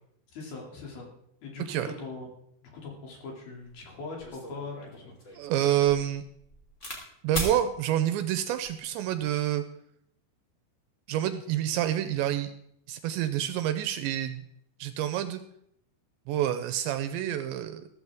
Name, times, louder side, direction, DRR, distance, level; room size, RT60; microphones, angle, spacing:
voice 1, 0.3-1.1 1.4-2.3 2.6-5.5, left 3 dB, 55° left, 0 dB, 4.1 m, -41 dB
sound 1, 3.7-3.8 4.2-7.0 7.3-7.6 8.4-8.8, equal, 20° left, 2.0 m, -38 dB
voice 2, 5.4-6.2 7.2-9.6 11.1-12.5 12.9-14.4 14.8-15.4 16.3-17.9, right 11 dB, 80° right, 9 dB, 2.7 m, -28 dB
15.0 x 13.5 x 3.6 m, 0.72 s
omnidirectional pair, 5.4 m